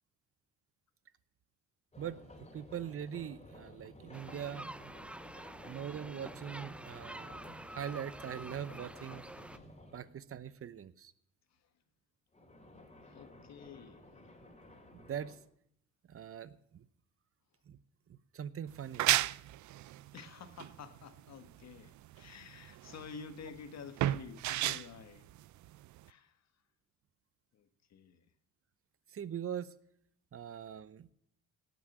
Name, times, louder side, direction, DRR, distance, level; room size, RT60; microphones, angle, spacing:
sound 1, 1.9-10.1 12.3-15.4, left 1 dB, 20° left, 3.2 m, -54 dB
voice 1, 2.0-4.9 5.6-9.3 9.9-11.1 14.9-15.4 16.1-16.9 17.7-17.8 18.1-19.1 29.1-29.7 30.3-31.1, right 9 dB, 50° right, 0.8 m, -42 dB
sound 2, 4.1-9.6, right 1 dB, 5° right, 0.4 m, -48 dB
voice 2, 13.0-14.1 20.1-25.3 26.1-26.4 27.5-28.2, left 6 dB, 60° left, 1.4 m, -50 dB
sound 3, 18.7-26.1, right 15 dB, 70° right, 0.5 m, -34 dB
18.0 x 6.1 x 9.4 m
cardioid pair, 90°, 30 cm